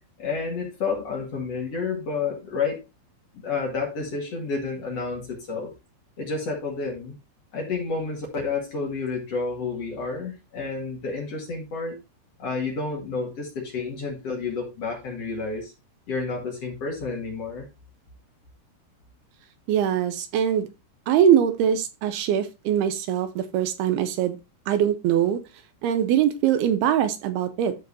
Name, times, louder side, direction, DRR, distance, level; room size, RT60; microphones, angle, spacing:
voice 1, 0.2-2.8 3.4-5.7 6.2-7.1 7.5-12.0 12.4-15.7 16.1-17.7, left 4 dB, 45° left, 2.6 m, -30 dB
voice 2, 19.7-20.7 21.1-24.4 24.7-25.4 25.8-27.8, right 9 dB, 80° right, 2.5 m, -22 dB
13.5 x 4.5 x 2.8 m
omnidirectional pair, 4.7 m